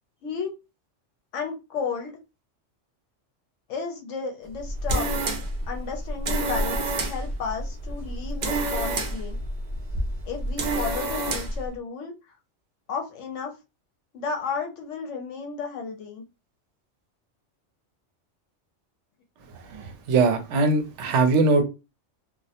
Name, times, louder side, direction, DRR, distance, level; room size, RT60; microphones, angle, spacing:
voice 1, 0.2-0.5 1.3-2.2 3.7-5.2 5.7-9.4 10.3-12.1 12.9-13.5 14.1-16.2, left 5 dB, 75° left, 0.9 m, -33 dB
sound 1, 4.5-11.7, right 2 dB, 55° right, 0.5 m, -28 dB
voice 2, 19.6-21.6, right 3 dB, 75° right, 0.9 m, -21 dB
2.4 x 2.0 x 2.7 m
omnidirectional pair, 1.3 m